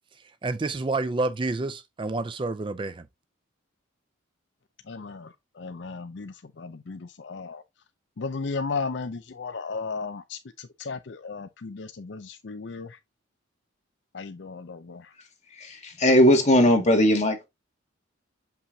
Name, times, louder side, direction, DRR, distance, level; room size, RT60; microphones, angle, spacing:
voice 1, 0.4-3.1, right 3 dB, 25° right, 0.4 m, -29 dB
voice 2, 4.9-7.6 8.2-13.0 14.1-15.1, left 4 dB, 60° left, 0.5 m, -35 dB
voice 3, 15.5-17.5, equal, 35° left, 2.1 m, -19 dB
6.9 x 5.6 x 2.7 m
head